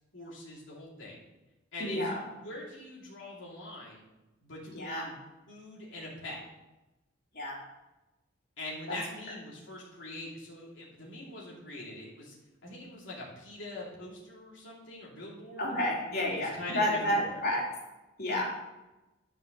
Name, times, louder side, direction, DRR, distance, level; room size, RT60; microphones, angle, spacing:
voice 1, 0.1-1.2 1.7-2.0 2.4-4.0 4.4-5.2 5.5-6.4 8.6-12.4 12.6-15.7 16.2-17.4, left 2 dB, 75° left, -5 dB, 3.0 m, -43 dB
voice 2, 1.8-2.2 4.7-5.1 7.3-7.6 8.9-9.0 15.6-17.6 18.2-18.7, left 1 dB, 55° left, -3 dB, 3.2 m, -30 dB
11.0 x 5.5 x 6.6 m, 1.0 s
head